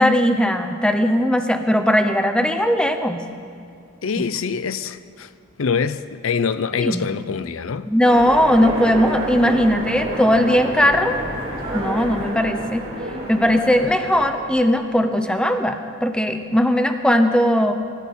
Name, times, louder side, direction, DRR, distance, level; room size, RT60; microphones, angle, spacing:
voice 1, 0.0-3.2 6.8-7.1 7.9-11.2 11.7-12.8 13.3-17.7, equal, 5° left, 0.8 m, -18 dB
voice 2, 4.0-5.3 5.6-7.9, left 6 dB, 80° left, 0.6 m, -24 dB
Train, 8.0-15.0, right 1 dB, 30° right, 3.8 m, -29 dB
24.0 x 13.0 x 4.3 m
head